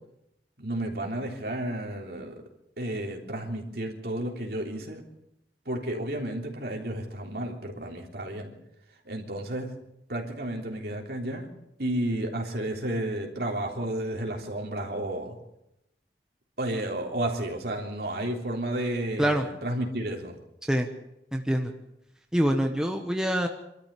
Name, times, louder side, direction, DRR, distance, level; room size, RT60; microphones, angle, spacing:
voice 1, 0.6-2.3 2.8-5.0 5.6-8.5 9.0-9.7 10.1-11.5 11.8-15.4 16.6-20.4, right 1 dB, 60° right, 1 dB, 3.4 m, -32 dB
voice 2, 21.3-21.7 22.3-23.5, equal, 5° right, 3 dB, 1.1 m, -25 dB
25.5 x 13.5 x 8.4 m, 0.85 s
head